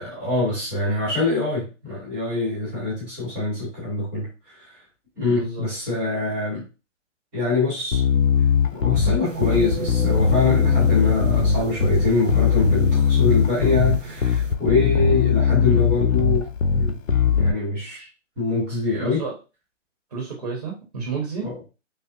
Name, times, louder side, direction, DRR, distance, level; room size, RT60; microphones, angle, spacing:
voice 1, 0.0-4.8 5.2-6.7 7.3-8.0 8.7-17.0 17.3-18.1 18.4-19.2 21.4-21.7, left 3 dB, 5° right, -10 dB, 0.9 m, -24 dB
voice 2, 5.2-5.6 18.9-19.4 20.1-21.5, right 4 dB, 30° right, -1 dB, 0.9 m, -31 dB
Bass guitar, 7.9-17.5, left 7 dB, 85° left, 0.7 m, -20 dB
sound 1, 9.2-14.5, right 6 dB, 75° right, 0.6 m, -34 dB
5.6 x 2.0 x 2.5 m, 0.30 s
hypercardioid pair, 165°, 38 cm